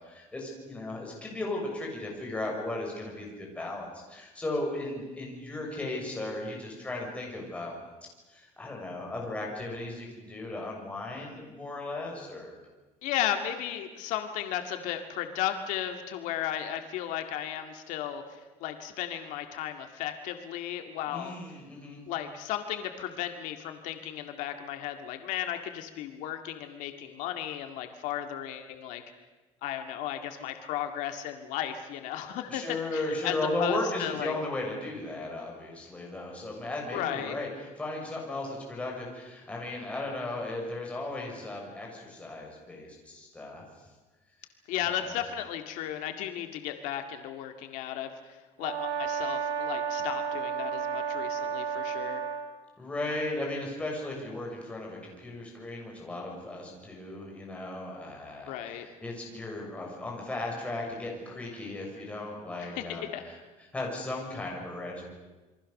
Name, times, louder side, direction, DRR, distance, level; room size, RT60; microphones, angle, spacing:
voice 1, 0.0-7.8 8.3-12.5 21.1-22.0 32.5-43.6 44.8-45.2 52.8-63.4 63.7-65.1, left 2 dB, 10° left, -1 dB, 6.2 m, -36 dB
voice 2, 13.0-21.4 22.1-29.0 29.6-32.6 32.9-34.3 36.9-37.3 44.7-48.1 48.6-52.2 58.5-58.9 62.6-63.2, left 11 dB, 80° left, 6 dB, 2.1 m, -35 dB
Brass instrument, 48.6-52.5, right 6 dB, 80° right, 4.5 m, -32 dB
28.0 x 23.5 x 6.6 m, 1.2 s
cardioid pair, 175°, 13 cm